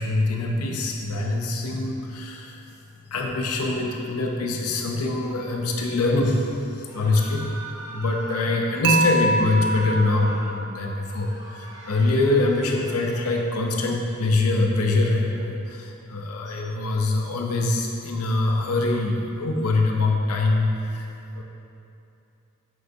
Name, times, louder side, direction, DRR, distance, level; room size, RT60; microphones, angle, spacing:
voice 1, 0.0-2.6 3.1-7.5 7.9-21.1 21.3-21.4, left 2 dB, 85° left, 1 dB, 0.6 m, -24 dB
sound 1, 6.8-8.6 9.2-10.6 11.0-13.3, right 2 dB, 15° right, 0.9 m, -41 dB
Dishes pots and pans / Chink clink, 8.8-11.0, right 2 dB, 55° right, 0.3 m, -25 dB
6.6 x 6.5 x 2.6 m, 2.7 s
head